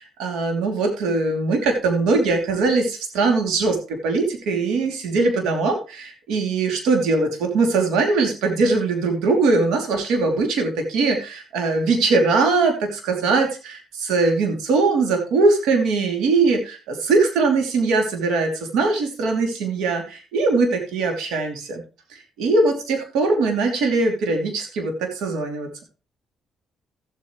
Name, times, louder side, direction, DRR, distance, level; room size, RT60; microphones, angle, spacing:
voice 1, 0.2-21.8 22.1-25.7, right 3 dB, 90° right, 3 dB, 2.8 m, -21 dB
14.5 x 8.7 x 3.1 m, 0.32 s
cardioid pair, 90°, 0 cm